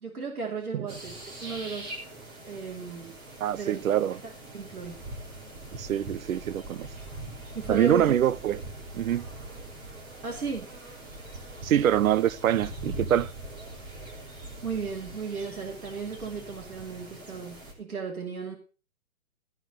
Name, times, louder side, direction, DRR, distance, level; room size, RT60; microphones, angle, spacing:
voice 1, 0.0-2.0 2.4-3.2 3.5-3.8 4.2-5.0 7.5-8.1 10.2-10.7 14.6-18.6, right 5 dB, 85° right, 3.0 m, -35 dB
sound 1, 0.9-17.7, right 2 dB, 25° right, 3.1 m, -42 dB
voice 2, 3.4-4.2 5.7-6.9 7.7-8.6 8.9-9.2 11.6-13.3, right 10 dB, 70° right, 0.7 m, -25 dB
14.0 x 5.9 x 6.3 m
hypercardioid pair, 145°, 42 cm